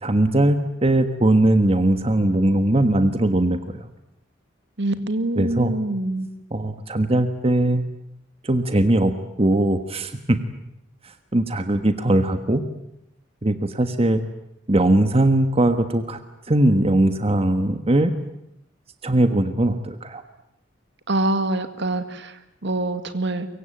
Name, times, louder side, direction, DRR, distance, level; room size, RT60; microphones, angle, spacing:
voice 1, 0.0-3.9 5.4-5.7 6.5-7.8 8.4-9.1 9.4-10.4 11.3-12.6 13.4-14.2 14.7-16.2 16.5-18.1 19.0-20.2, right 1 dB, 30° right, 8 dB, 1.4 m, -20 dB
voice 2, 4.8-6.3 21.1-23.5, right 2 dB, 60° right, 10 dB, 2.1 m, -25 dB
24.0 x 23.5 x 9.1 m, 0.79 s
head